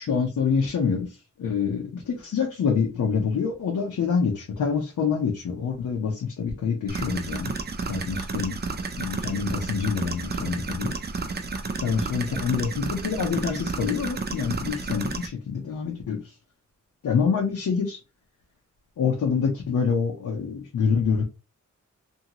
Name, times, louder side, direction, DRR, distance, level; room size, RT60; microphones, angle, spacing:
voice 1, 0.0-7.5 7.9-8.5 9.0-10.9 11.8-16.3 17.0-18.0 19.0-21.2, left 6 dB, 75° left, 0 dB, 0.8 m, -26 dB
sound 1, 6.9-15.3, right 4 dB, 35° right, 0.5 m, -32 dB
2.8 x 2.7 x 2.8 m, 0.27 s
wide cardioid pair, 125°, 31 cm